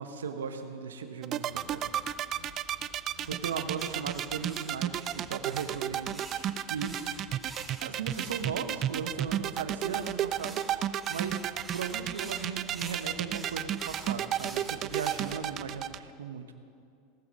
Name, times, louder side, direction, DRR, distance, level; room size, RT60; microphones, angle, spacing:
voice 1, 0.0-1.9 3.3-7.0 7.8-11.4 11.7-16.5, right 6 dB, 90° right, 8 dB, 1.0 m, -37 dB
sound 1, 1.2-16.0, right 11 dB, 45° right, 0.4 m, -31 dB
sound 2, 1.4-16.0, left 3 dB, 60° left, 2.3 m, -55 dB
sound 3, 3.2-9.0 9.8-15.3, right 2 dB, 10° right, 2.3 m, -48 dB
18.5 x 7.4 x 6.2 m, 2.3 s
hypercardioid pair, 95°, 0 cm